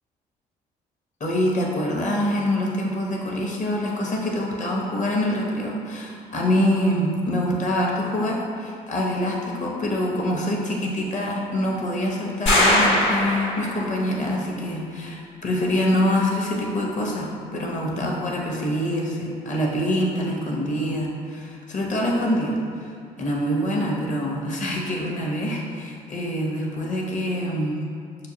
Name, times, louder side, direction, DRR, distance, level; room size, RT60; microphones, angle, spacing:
voice 1, 1.2-22.9 23.2-27.7, equal, 40° left, -2 dB, 0.9 m, -25 dB
sound 1, 12.5-13.9, left 1 dB, 80° left, 1.3 m, -20 dB
6.2 x 2.2 x 2.8 m, 2.2 s
supercardioid pair, 70°, 18 cm